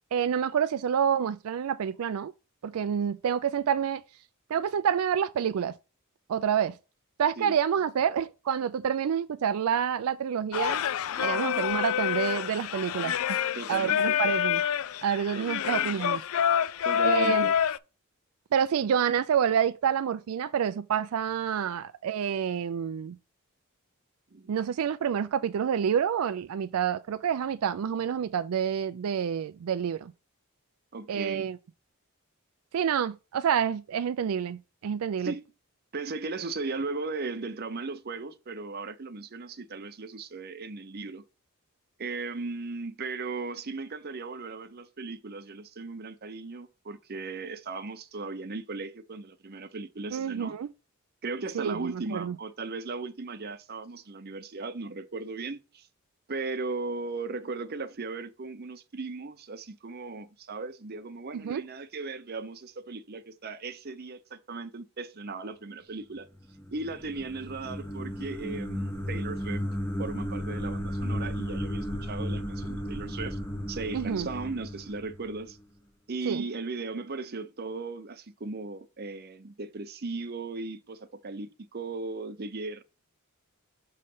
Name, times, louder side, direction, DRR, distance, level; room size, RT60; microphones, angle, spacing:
voice 1, 0.1-2.3 2.6-4.0 4.5-5.7 6.3-6.8 7.2-10.8 11.2-13.4 13.7-14.6 15.0-16.2 17.0-17.5 18.5-23.2 24.5-30.1 31.1-31.6 32.7-35.3 50.1-50.7 51.5-52.4 61.3-61.6 73.9-74.3 76.3-76.4, right 8 dB, 80° right, 0.4 m, -28 dB
Singing, 10.5-17.8, left 9 dB, 75° left, 0.4 m, -27 dB
voice 2, 11.3-11.6 13.5-14.2 15.3-15.5 16.8-17.5 24.3-24.5 30.9-31.4 35.2-35.4 35.9-41.2 42.0-50.5 51.2-55.9 56.3-66.3 66.7-69.6 70.0-73.4 73.7-75.6 76.1-82.8, right 3 dB, 45° right, 0.7 m, -37 dB
sound 1, 66.4-75.6, equal, 10° left, 0.9 m, -34 dB
6.7 x 3.2 x 5.4 m
head